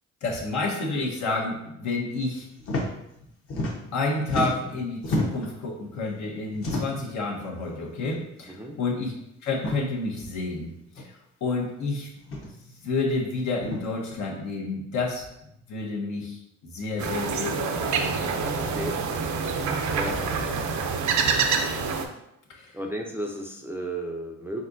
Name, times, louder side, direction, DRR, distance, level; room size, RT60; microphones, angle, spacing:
voice 1, 0.2-2.5 3.9-9.1 9.4-15.3 15.7-16.4 16.7-18.0 22.5-22.7, left 3 dB, 70° left, -1 dB, 1.1 m, -30 dB
sound 1, 2.6-2.9 3.2-4.0 4.3-5.5 6.5-7.1 8.0-8.2 8.5-8.6 9.5-9.8 10.9-11.0 12.2-12.5 13.6-13.8, left 1 dB, 45° left, 1.0 m, -30 dB
sound 2, 17.0-22.0, right 5 dB, 70° right, 0.6 m, -26 dB
voice 2, 18.4-19.4 19.9-20.4 22.7-24.6, right 1 dB, 10° right, 1 dB, 0.4 m, -34 dB
4.2 x 3.7 x 2.6 m, 0.82 s
cardioid pair, 90°, 30 cm